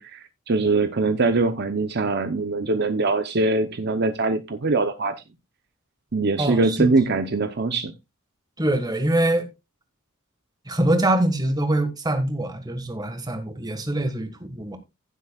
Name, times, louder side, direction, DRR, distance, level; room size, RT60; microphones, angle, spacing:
voice 1, 0.0-5.1 6.1-7.9, right 3 dB, 50° right, 0.8 m, -22 dB
voice 2, 6.4-6.9 8.6-9.5 10.6-14.8, right 1 dB, 20° right, 1.6 m, -24 dB
15.5 x 7.7 x 2.4 m
head